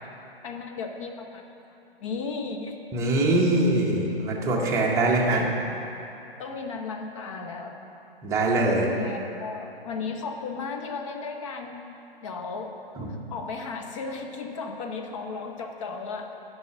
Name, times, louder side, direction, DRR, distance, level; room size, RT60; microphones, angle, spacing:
voice 1, 0.4-1.5 2.0-2.7 5.2-5.5 6.4-7.7 8.9-11.9 12.2-12.8 13.3-16.4, left 4 dB, 30° left, 4 dB, 0.7 m, -35 dB
voice 2, 2.9-5.5 8.2-8.9 13.0-13.1, right 2 dB, 10° right, -3 dB, 0.8 m, -23 dB
9.3 x 5.5 x 5.8 m, 2.9 s
figure-of-eight pair, 130°, 30 cm